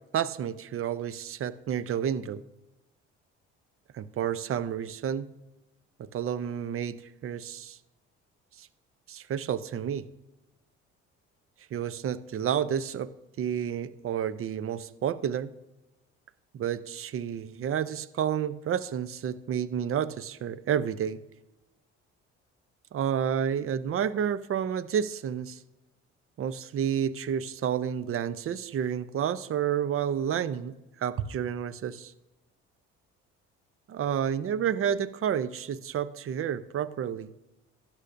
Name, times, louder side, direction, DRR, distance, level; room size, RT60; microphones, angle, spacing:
voice 1, 0.1-2.4 3.9-5.3 6.0-7.0 7.2-7.8 8.6-8.7 9.1-10.1 11.7-13.1 13.4-15.5 16.5-21.2 22.9-25.6 26.4-32.1 33.9-37.3, right 9 dB, 45° right, 0.6 m, -30 dB
13.0 x 9.9 x 2.6 m
hypercardioid pair, 60°, 31 cm